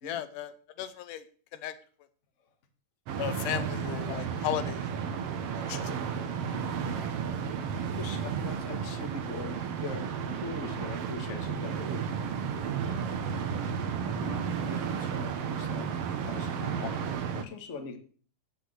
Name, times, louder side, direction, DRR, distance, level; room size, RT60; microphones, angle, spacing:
voice 1, 0.0-0.5 0.8-1.2 1.5-1.7 3.2-4.8 5.6-5.9 6.9-7.1 16.8-16.9, left 11 dB, 80° left, 11 dB, 2.2 m, -35 dB
sound 1, 3.1-17.4, right 7 dB, 70° right, 1.5 m, -33 dB
voice 2, 7.7-12.1 12.8-13.1 14.2-15.9 16.2-18.0, left 4 dB, 40° left, 3 dB, 1.0 m, -42 dB
8.8 x 6.4 x 7.9 m, 0.42 s
omnidirectional pair, 3.8 m